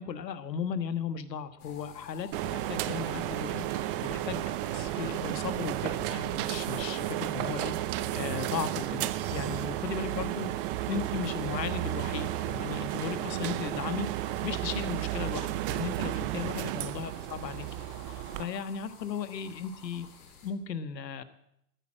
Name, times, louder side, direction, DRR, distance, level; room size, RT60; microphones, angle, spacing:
voice 1, 0.0-4.4 4.7-7.7 8.1-10.5 10.9-17.7 18.1-20.1 20.4-21.2, left 7 dB, 80° left, 11 dB, 1.5 m, -36 dB
sound 1, 1.6-20.5, left 6 dB, 60° left, 3.8 m, -52 dB
sound 2, 2.3-18.4, right 14 dB, 35° right, 0.7 m, -33 dB
14.0 x 10.5 x 7.5 m, 0.78 s
hypercardioid pair, 125°, 49 cm